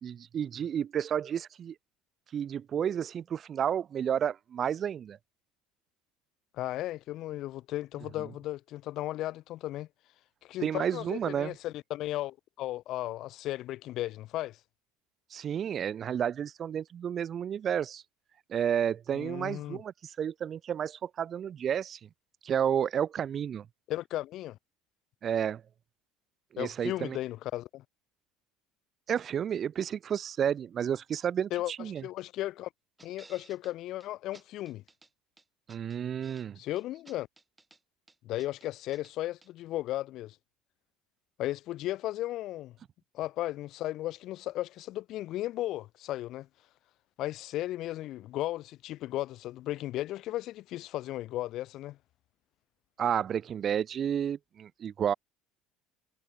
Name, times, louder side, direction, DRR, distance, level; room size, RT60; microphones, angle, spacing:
voice 1, 0.0-1.7 2.3-5.2 10.6-11.5 15.3-18.0 18.5-22.0 22.4-23.6 25.2-25.6 26.5-27.2 29.1-32.0 35.7-36.6 53.0-55.1, right 8 dB, 30° right, 0.4 m, -31 dB
voice 2, 6.6-9.9 10.4-14.6 19.1-19.8 23.9-24.6 26.6-27.8 31.5-32.7 33.0-34.8 36.5-37.3 38.2-40.3 41.4-42.8 43.1-46.5 47.2-52.0, left 15 dB, 45° left, 1.7 m, -35 dB
sound 1, 33.0-33.7 34.0-34.1 34.3-35.1 35.4-36.5 36.8-37.8 38.1-39.1 39.4-39.5, right 3 dB, 10° right, 7.7 m, -57 dB
cardioid pair, 165°, 0 cm